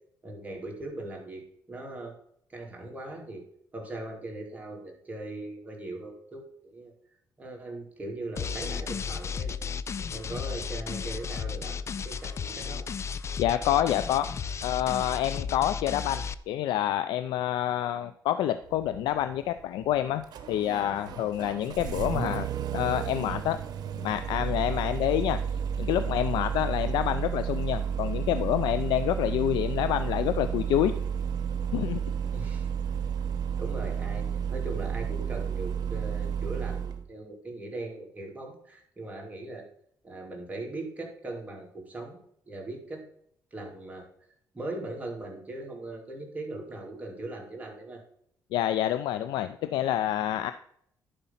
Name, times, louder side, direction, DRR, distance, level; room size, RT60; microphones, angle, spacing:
voice 1, 0.2-2.1 2.5-3.4 3.7-6.9 7.4-9.5 10.1-12.9 32.3-32.7 33.6-39.7 40.0-42.2 42.5-43.0 43.5-44.1 44.5-48.0, right 2 dB, 20° right, 0 dB, 2.9 m, -39 dB
sound 1, 8.4-16.3, left 6 dB, 40° left, 0.5 m, -34 dB
voice 2, 13.4-14.3 14.6-20.2 20.5-22.5 22.7-23.6 24.0-25.4 25.8-31.0 31.7-32.0 48.5-50.5, left 12 dB, 90° left, 12 dB, 0.5 m, -27 dB
Engine starting, 18.6-37.0, right 8 dB, 65° right, 1.0 m, -32 dB
11.0 x 5.2 x 5.8 m, 0.66 s
cardioid pair, 100°, 7 cm